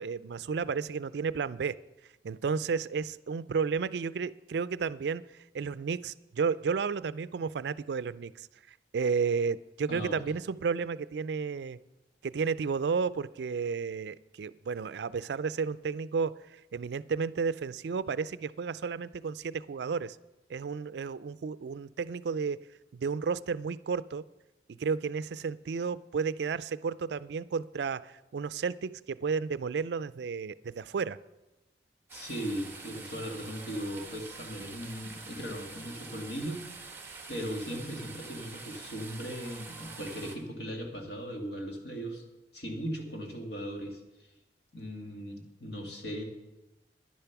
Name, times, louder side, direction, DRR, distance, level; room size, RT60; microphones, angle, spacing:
voice 1, 0.0-1.8 2.2-5.2 5.5-8.5 8.9-11.8 12.2-20.2 20.5-22.6 22.9-24.2 24.8-31.2, right 5 dB, 65° right, 17 dB, 0.4 m, -32 dB
voice 2, 32.1-36.7 37.3-42.2 42.5-44.3 44.7-46.2, equal, 70° left, 2 dB, 2.1 m, -38 dB
sound 1, 32.1-40.4, right 4 dB, 15° right, 1.4 m, -46 dB
10.5 x 10.5 x 5.9 m, 1.0 s
head